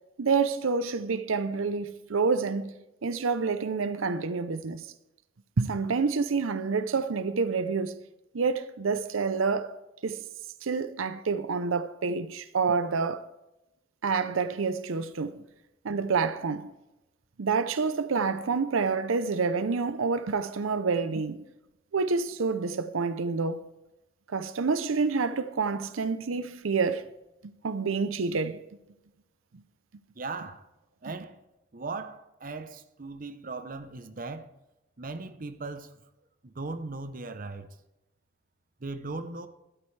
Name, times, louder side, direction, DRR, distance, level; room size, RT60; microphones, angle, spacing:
voice 1, 0.2-2.7 3.0-4.9 5.6-8.0 8.3-9.7 10.0-10.2 10.6-13.2 14.0-15.4 15.8-16.7 17.4-21.5 21.9-23.6 24.3-27.1 27.4-28.6, right 4 dB, 90° right, 0.6 m, -28 dB
voice 2, 30.2-30.7 31.0-31.4 31.7-34.5 35.0-35.9 36.4-37.7 38.8-39.5, right 3 dB, 45° right, 0.8 m, -38 dB
13.5 x 12.0 x 3.3 m
head